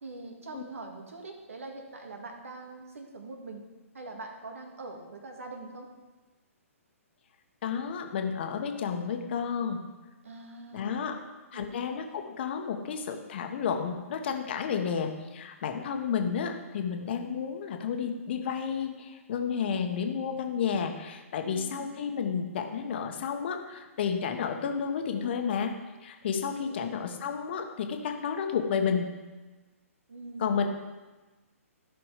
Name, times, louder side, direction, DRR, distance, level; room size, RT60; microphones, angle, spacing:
voice 1, 0.0-3.6 3.9-5.9 10.2-11.2 11.5-11.8 21.4-21.9 26.3-26.9 30.1-30.6, right 3 dB, 65° right, 3 dB, 2.1 m, -43 dB
voice 2, 7.6-9.8 10.7-11.2 11.5-25.7 26.0-29.1 30.4-30.6, left 7 dB, 45° left, 5 dB, 1.3 m, -31 dB
14.0 x 6.0 x 5.0 m, 1.2 s
figure-of-eight pair, 125°, 8 cm